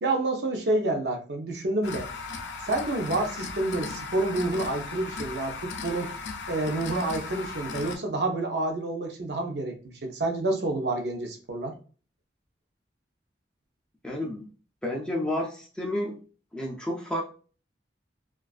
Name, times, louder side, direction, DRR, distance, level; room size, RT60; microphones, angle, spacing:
voice 1, 0.0-2.1 2.7-6.1 6.5-11.7, right 2 dB, 65° right, 3 dB, 0.5 m, -28 dB
sound 1, 1.8-8.0, left 4 dB, 80° left, 0.4 m, -37 dB
voice 2, 14.0-14.5 14.8-16.2 16.5-17.2, left 1 dB, 5° left, -2 dB, 0.3 m, -30 dB
2.4 x 2.3 x 2.3 m, 0.39 s
head